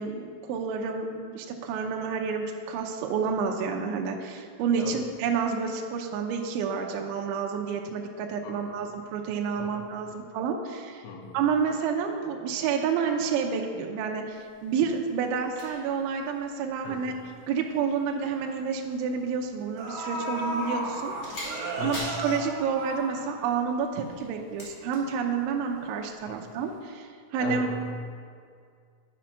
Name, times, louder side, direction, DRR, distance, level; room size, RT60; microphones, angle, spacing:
voice 1, 0.0-11.0 11.3-17.1 17.5-21.4 21.8-27.7, right 6 dB, 80° right, 2 dB, 2.9 m, -29 dB
voice 2, 8.4-8.8 9.6-9.7 11.0-11.4 16.8-17.2 21.8-22.2 26.3-26.4 27.4-27.9, left 4 dB, 80° left, 2 dB, 2.9 m, -38 dB
sound 1, 14.3-26.8, left 1 dB, 35° left, 1.8 m, -47 dB
sound 2, 17.6-17.7 18.1-18.3 19.3-19.4 19.8-23.7 24.0-24.1, right 1 dB, 55° right, 3.2 m, -34 dB
10.5 x 5.1 x 5.7 m, 2.1 s
omnidirectional pair, 5.7 m